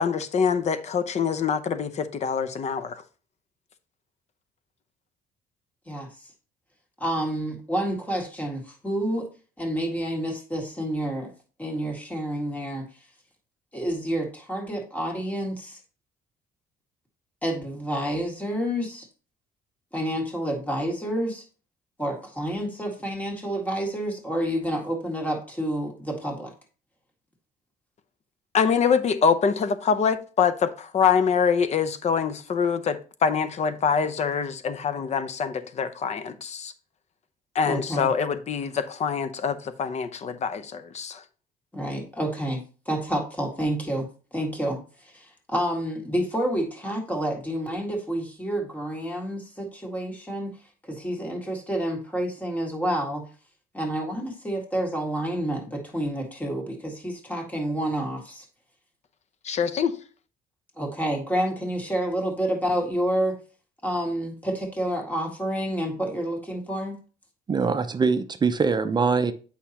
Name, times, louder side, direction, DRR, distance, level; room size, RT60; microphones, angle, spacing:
voice 1, 0.0-3.0 28.5-36.7 37.5-41.2 59.4-60.0, left 6 dB, 40° left, 0.7 m, -25 dB
voice 2, 7.0-9.3 9.6-11.3 11.6-12.9 13.7-15.8 17.4-19.1 19.9-21.4 22.0-26.5 37.7-38.1 41.7-50.5 50.8-53.3 53.7-58.5 60.8-63.4 63.8-67.0, right 1 dB, 10° left, 1.9 m, -29 dB
voice 3, 67.5-69.3, right 5 dB, 25° right, 0.6 m, -23 dB
8.3 x 5.6 x 2.9 m
cardioid pair, 110°, 17 cm